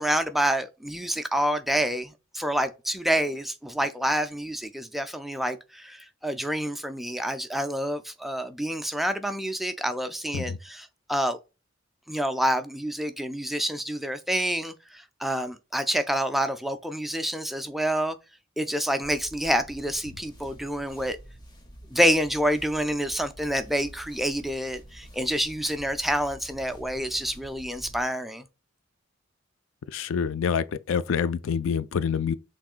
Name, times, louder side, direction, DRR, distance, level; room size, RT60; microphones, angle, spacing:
voice 1, 0.0-11.4 12.1-18.2 18.6-21.2 21.9-28.4, equal, ahead, 0.3 m, -28 dB
sound 1, 19.0-28.0, equal, 20° left, 1.0 m, -48 dB
voice 2, 29.9-32.3, left 6 dB, 75° left, 0.4 m, -27 dB
5.9 x 3.6 x 2.4 m
head